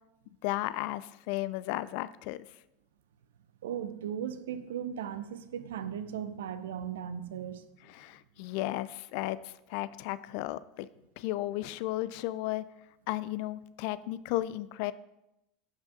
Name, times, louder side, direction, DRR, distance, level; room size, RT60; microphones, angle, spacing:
voice 1, 0.4-2.5 7.9-10.9 11.2-12.6 13.1-14.9, left 16 dB, 60° left, 0.3 m, -34 dB
voice 2, 3.6-7.6, right 9 dB, 75° right, 0.5 m, -37 dB
11.5 x 5.5 x 2.7 m
hypercardioid pair, 85°, 0 cm